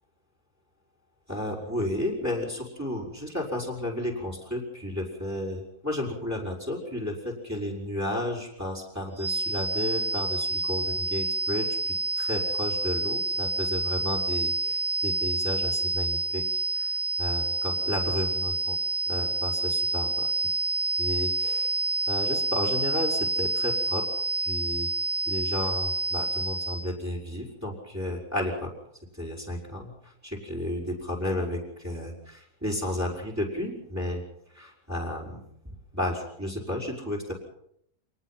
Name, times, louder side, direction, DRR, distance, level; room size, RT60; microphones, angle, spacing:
voice 1, 1.3-18.8 19.1-20.3 21.0-21.7 22.1-24.1 24.4-24.9 25.3-28.7 29.1-34.2 34.5-35.4 35.9-37.3, left 1 dB, 10° right, -4 dB, 5.5 m, -32 dB
sound 1, 9.2-26.9, right 2 dB, 60° left, 4.2 m, -28 dB
27.5 x 19.5 x 6.1 m, 0.72 s
omnidirectional pair, 1.7 m